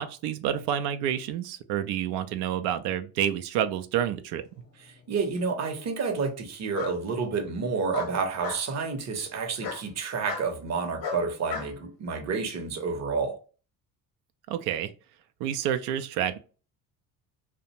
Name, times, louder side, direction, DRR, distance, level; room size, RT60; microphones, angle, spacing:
voice 1, 0.0-4.4 14.5-14.9 15.4-16.4, right 10 dB, 65° right, 0.5 m, -29 dB
Bark, 4.6-5.2 6.7-6.9 7.9-8.6 9.6-9.8 10.3-10.5 11.0-11.7, left 5 dB, 55° left, 0.8 m, -35 dB
voice 2, 4.8-13.4, right 5 dB, 40° right, 0.8 m, -30 dB
2.4 x 2.1 x 2.8 m
hypercardioid pair, 70°, 43 cm